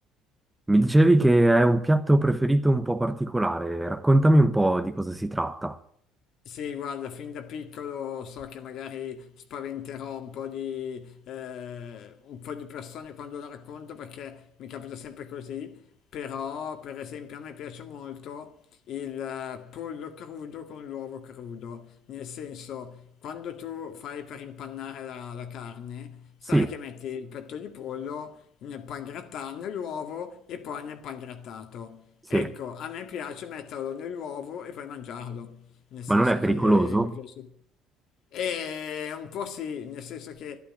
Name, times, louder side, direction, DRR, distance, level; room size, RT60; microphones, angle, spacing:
voice 1, 0.7-5.8 26.5-26.7 32.3-32.5 36.1-37.1, right 1 dB, 5° right, 1.0 m, -21 dB
voice 2, 6.5-37.5 38.3-40.6, left 8 dB, 60° left, 2.1 m, -37 dB
12.0 x 11.5 x 8.7 m
cardioid pair, 125°, 0 cm